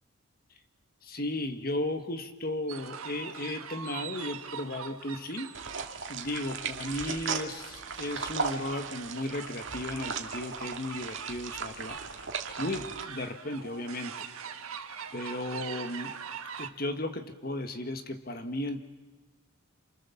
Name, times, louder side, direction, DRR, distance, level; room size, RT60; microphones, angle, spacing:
voice 1, 1.0-5.5 6.1-12.2 12.6-14.7 15.1-16.2 16.6-18.8, left 1 dB, 45° left, 8 dB, 1.6 m, -35 dB
sound 1, 2.7-16.7, right 7 dB, 85° right, 1.5 m, -43 dB
sound 2, 5.5-13.0, right 5 dB, 60° right, 2.0 m, -37 dB
29.0 x 27.0 x 7.2 m, 1.2 s
head